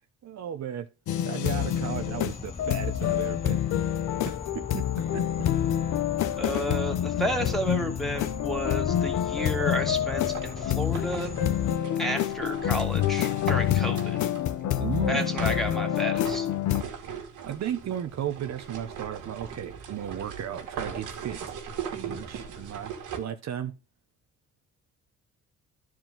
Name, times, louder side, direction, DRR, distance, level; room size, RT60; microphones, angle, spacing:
voice 1, 0.2-0.9 1.2-3.6 4.2-5.2 14.8-15.4 17.5-21.4 21.9-23.7, right 10 dB, 60° right, 0.9 m, -35 dB
sound 1, 1.1-16.8, left 11 dB, 75° left, 0.8 m, -27 dB
sound 2, 1.6-11.8, left 4 dB, 20° left, 0.6 m, -39 dB
voice 2, 6.4-11.3 12.0-14.2 15.1-16.5, right 1 dB, ahead, 2.3 m, -32 dB
sound 3, 10.1-14.7 15.4-23.2, right 7 dB, 90° right, 2.3 m, -39 dB
12.5 x 4.7 x 3.8 m
cardioid pair, 90°, 30 cm